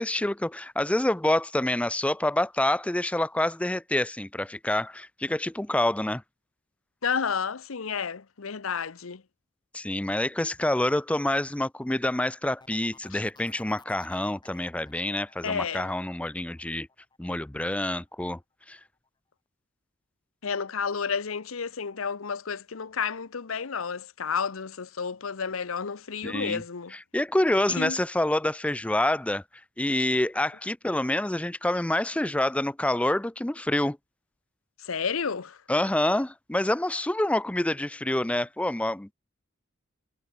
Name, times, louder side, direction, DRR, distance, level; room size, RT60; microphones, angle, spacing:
voice 1, 0.0-6.2 9.7-16.9 17.2-18.4 18.7-18.8 26.2-26.6 26.9-29.4 29.8-34.0 35.7-39.1, left 1 dB, 5° left, 0.4 m, -27 dB
voice 2, 7.0-9.2 13.1-13.2 15.4-15.9 20.4-26.9 27.8-28.0 34.8-35.6, left 6 dB, 85° left, 0.8 m, -31 dB
sound 1, 12.6-18.2 18.6-19.1, left 3 dB, 20° left, 4.5 m, -57 dB
head